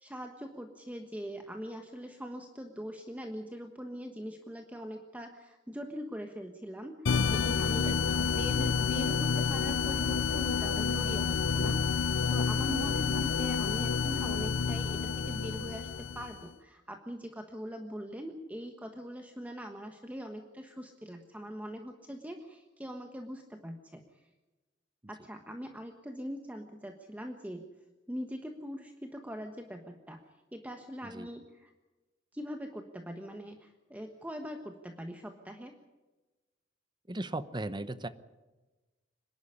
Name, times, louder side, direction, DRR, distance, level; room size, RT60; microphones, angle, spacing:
voice 1, 0.0-24.3 25.1-27.7 28.1-30.2 30.5-31.7 32.3-35.8, equal, 10° right, 4 dB, 1.3 m, -42 dB
sound 1, 7.1-16.4, left 5 dB, 90° left, 0.7 m, -29 dB
voice 2, 7.8-8.3 31.0-31.3 37.1-38.1, right 2 dB, 25° right, 12 dB, 0.9 m, -37 dB
25.5 x 11.5 x 10.0 m, 1.2 s
head